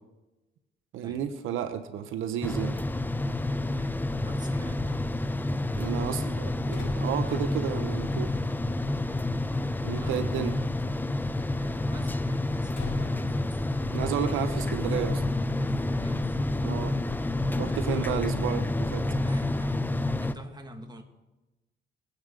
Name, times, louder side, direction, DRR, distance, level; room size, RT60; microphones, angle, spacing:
voice 1, 0.9-2.8 5.7-8.3 9.8-10.5 13.9-15.2 16.6-17.0 17.6-19.1, right 9 dB, 90° right, 10 dB, 0.9 m, -32 dB
sound 1, 2.4-20.3, left 2 dB, 10° left, 0.7 m, -29 dB
voice 2, 3.8-5.1 9.1-9.3 9.9-10.7 11.5-13.7 14.2-14.8 15.9-16.4 17.6-18.2 19.2-21.0, right 1 dB, 20° right, 4 dB, 2.0 m, -48 dB
Slam, 5.7-15.1, left 5 dB, 65° left, 5.5 m, -49 dB
22.5 x 9.3 x 3.8 m, 1.1 s
cardioid pair, 90°, 20 cm